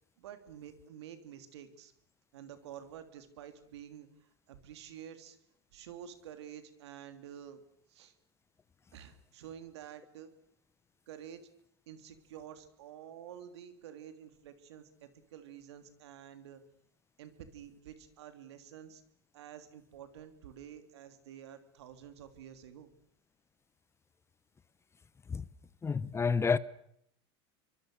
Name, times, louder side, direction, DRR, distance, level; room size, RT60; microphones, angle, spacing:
voice 1, 0.2-1.9 2.3-5.4 5.7-7.6 7.9-8.1 8.9-10.3 11.1-11.5 11.9-16.6 17.2-19.0 19.3-22.9, right 9 dB, 85° right, 3.2 m, -49 dB
voice 2, 25.8-26.6, left 5 dB, 20° left, 1.0 m, -29 dB
28.0 x 24.0 x 6.8 m
supercardioid pair, 110°, 14 cm